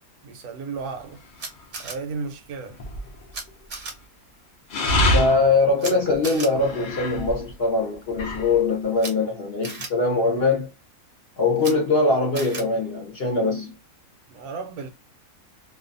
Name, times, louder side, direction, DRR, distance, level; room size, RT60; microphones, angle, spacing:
voice 1, 0.2-1.2 1.8-2.8 14.3-14.9, right 4 dB, 75° right, 1.0 m, -34 dB
sound 1, 1.2-1.6 2.7-3.5 4.7-7.5 7.9-8.6, left 1 dB, 90° left, 0.4 m, -26 dB
Camera, 1.4-1.9 3.3-3.4 3.7-3.9 5.8-5.9 6.2-6.5 9.0-9.1 9.6-9.9 11.6-11.7 12.3-12.6, right 3 dB, 45° right, 0.7 m, -34 dB
voice 2, 5.1-10.7 11.4-13.7, left 3 dB, 55° left, 0.7 m, -22 dB
2.6 x 2.3 x 2.4 m
omnidirectional pair, 1.6 m